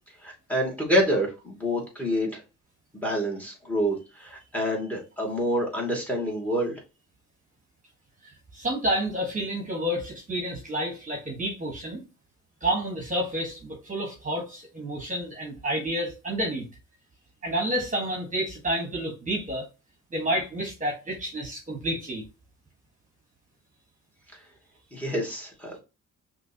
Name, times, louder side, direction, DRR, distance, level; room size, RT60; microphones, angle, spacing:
voice 1, 0.2-2.4 2.9-6.8 24.9-25.8, equal, 5° left, 2.6 m, -27 dB
voice 2, 8.2-12.0 12.6-16.7 17.4-19.6 20.1-22.2, right 1 dB, 25° right, 1.6 m, -29 dB
5.9 x 3.0 x 3.0 m
cardioid pair, 90°, 30 cm